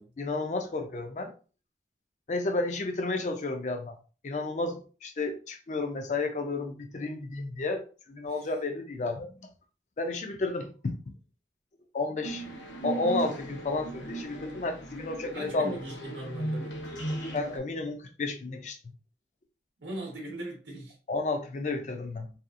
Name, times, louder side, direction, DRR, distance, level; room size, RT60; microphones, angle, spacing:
voice 1, 0.2-1.3 2.3-3.9 4.2-9.5 10.0-11.0 11.9-12.4 12.8-15.8 17.3-18.8 21.1-22.3, left 3 dB, 40° left, 0.4 m, -32 dB
sound 1, 12.2-17.6, right 2 dB, 85° left, 0.7 m, -37 dB
voice 2, 15.3-16.8 19.8-21.0, right 1 dB, 90° right, 0.7 m, -40 dB
2.7 x 2.4 x 2.4 m
head